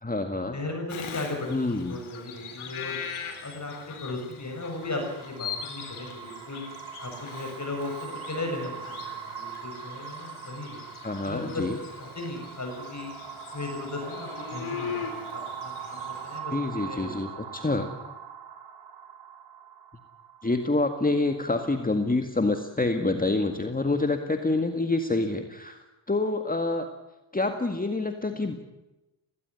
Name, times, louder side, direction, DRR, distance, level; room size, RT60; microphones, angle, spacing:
voice 1, 0.0-0.6 1.5-2.0 11.0-11.8 16.5-17.9 20.4-25.8 26.1-26.9 27.3-28.6, left 2 dB, 15° left, 6 dB, 2.0 m, -27 dB
voice 2, 0.5-3.0 3.4-6.6 7.0-10.8 11.2-13.1 13.5-17.1, left 2 dB, 35° left, 2 dB, 7.4 m, -36 dB
Bird vocalization bird call bird song, 0.9-16.4, left 7 dB, 75° left, 3.8 m, -41 dB
sound 1, 4.3-21.5, right 7 dB, 55° right, 3.0 m, -41 dB
18.0 x 17.5 x 9.8 m, 1.0 s
cardioid pair, 60°, 49 cm